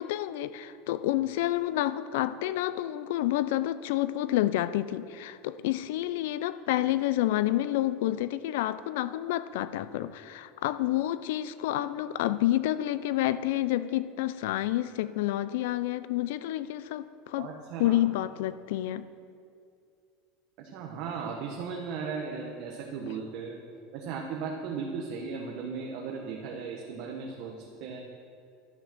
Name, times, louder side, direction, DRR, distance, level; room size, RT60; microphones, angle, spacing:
voice 1, 0.0-17.5 17.8-19.0, left 14 dB, 80° left, 15 dB, 0.4 m, -29 dB
voice 2, 17.4-18.0 20.6-23.6 23.9-28.0, right 5 dB, 65° right, 0 dB, 1.1 m, -36 dB
11.0 x 6.4 x 6.1 m, 2.4 s
supercardioid pair, 125°, 0 cm